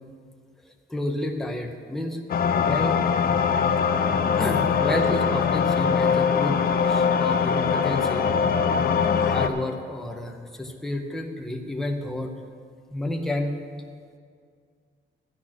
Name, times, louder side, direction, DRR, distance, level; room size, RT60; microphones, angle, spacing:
voice 1, 0.9-2.2 2.5-3.0 4.4-8.3 8.7-12.3 12.9-13.5, left 1 dB, ahead, 2 dB, 0.8 m, -30 dB
sound 1, 2.3-9.5, left 6 dB, 50° left, 0.6 m, -22 dB
12.0 x 8.5 x 6.1 m, 2.1 s
wide cardioid pair, 175°, 20 cm